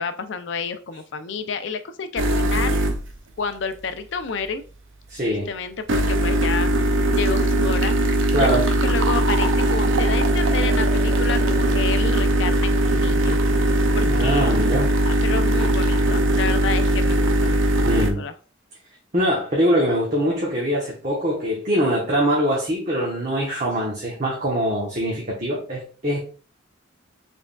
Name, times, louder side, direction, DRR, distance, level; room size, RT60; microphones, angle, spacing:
voice 1, 0.0-2.8 3.4-4.6 5.3-8.5 8.8-13.4 13.9-14.5 15.0-17.6 17.9-18.3, left 5 dB, 65° left, 10 dB, 0.5 m, -30 dB
sound 1, 2.2-3.1 5.9-18.1, right 1 dB, 80° right, 0.6 m, -20 dB
voice 2, 5.1-5.5 8.3-8.6 14.0-14.9 17.9-18.2 19.1-26.2, equal, 40° right, -5 dB, 1.1 m, -23 dB
4.6 x 3.5 x 2.3 m, 0.38 s
head